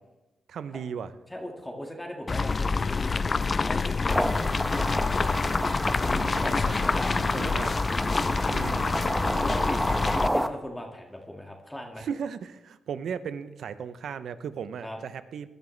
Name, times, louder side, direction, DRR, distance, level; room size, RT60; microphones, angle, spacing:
voice 1, 0.5-1.1 6.1-7.7 8.5-9.1 12.0-15.5, right 7 dB, 75° right, 13 dB, 0.6 m, -37 dB
voice 2, 1.3-5.3 6.0-7.7 8.0-8.8 9.2-12.1 14.8-15.0, left 1 dB, 10° left, 1 dB, 1.9 m, -39 dB
sound 1, 2.3-10.3, left 4 dB, 45° left, 0.4 m, -27 dB
sound 2, 4.1-10.5, equal, 5° right, 1.0 m, -30 dB
17.0 x 10.5 x 3.3 m, 1.0 s
supercardioid pair, 50°, 0 cm